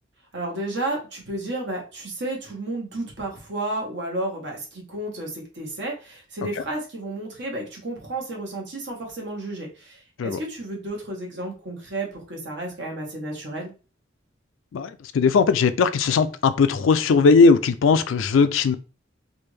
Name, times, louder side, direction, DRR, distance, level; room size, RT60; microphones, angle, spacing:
voice 1, 0.3-13.7, right 2 dB, 60° right, 1.3 m, -32 dB
voice 2, 14.7-18.7, left 4 dB, 80° left, 0.4 m, -18 dB
3.3 x 2.5 x 3.2 m
head